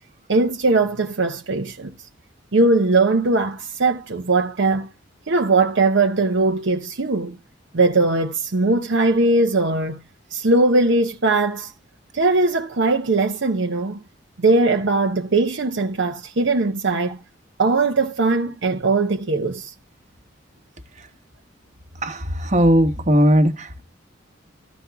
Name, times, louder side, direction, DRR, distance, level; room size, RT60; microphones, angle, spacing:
voice 1, 0.3-1.9 2.5-4.9 5.3-7.4 7.7-10.0 10.3-11.7 12.1-14.0 14.4-17.2 17.6-19.7, right 3 dB, 65° right, 0.8 m, -20 dB
voice 2, 22.0-23.8, equal, 40° right, 1.3 m, -18 dB
14.0 x 5.2 x 3.5 m
head